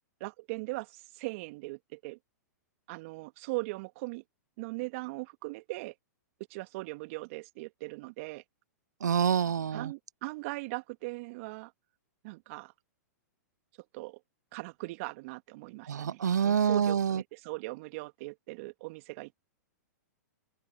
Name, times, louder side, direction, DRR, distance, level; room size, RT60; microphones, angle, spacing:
voice 1, 0.2-2.2 2.9-4.2 4.6-5.9 6.5-8.4 9.7-11.7 12.2-12.7 13.9-14.2 14.5-19.4, right 24 dB, 50° right, 2.2 m, -39 dB
voice 2, 9.0-9.9 15.9-17.2, right 7 dB, 80° right, 0.8 m, -27 dB
open air
hypercardioid pair, 110°, 9 cm